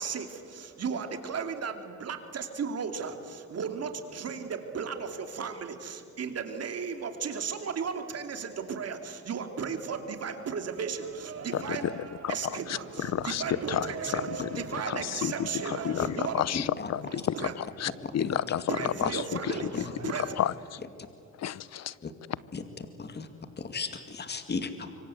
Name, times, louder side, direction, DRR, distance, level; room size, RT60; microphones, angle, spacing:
voice 1, 0.0-16.4 17.1-17.5 18.7-20.3, right 6 dB, 55° right, 6 dB, 3.0 m, -35 dB
voice 2, 11.5-20.8 21.4-22.0, left 10 dB, 60° left, 19 dB, 0.8 m, -32 dB
voice 3, 16.5-16.9 17.8-18.3 19.7-19.9 22.0-22.1 22.5-22.6 23.0-23.3 23.6-25.0, left 4 dB, 35° left, 8 dB, 2.2 m, -35 dB
25.5 x 24.0 x 8.0 m, 2.5 s
cardioid pair, 90°, 30 cm